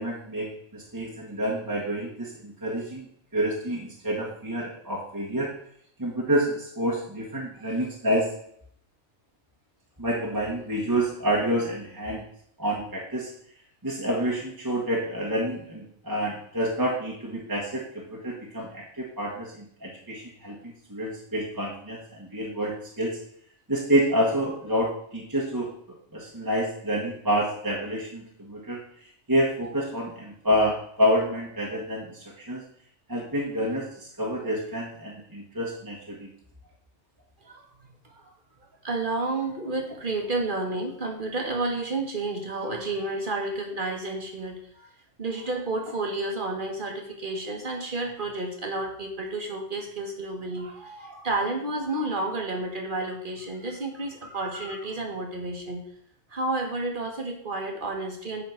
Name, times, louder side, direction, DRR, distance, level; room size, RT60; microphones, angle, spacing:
voice 1, 0.0-3.1 3.3-5.5 6.0-8.3 10.0-12.2 12.6-13.3 13.8-23.2 23.7-25.7 26.1-28.8 29.3-32.6 33.1-36.3, equal, 15° right, -3 dB, 1.5 m, -28 dB
voice 2, 38.8-44.9 45.2-55.8 56.3-58.4, right 2 dB, 45° right, 2 dB, 1.8 m, -31 dB
9.7 x 4.2 x 5.9 m, 0.66 s
omnidirectional pair, 1.2 m